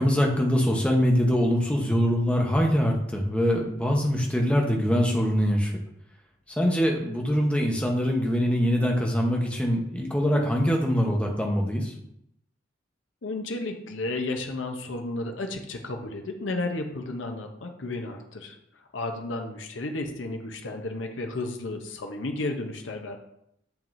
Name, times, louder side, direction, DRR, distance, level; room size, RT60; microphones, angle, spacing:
voice 1, 0.0-5.7 6.6-11.9, equal, 5° left, 0 dB, 0.9 m, -23 dB
voice 2, 13.2-23.2, left 2 dB, 85° left, 4 dB, 0.7 m, -33 dB
7.1 x 5.9 x 2.6 m, 0.77 s
head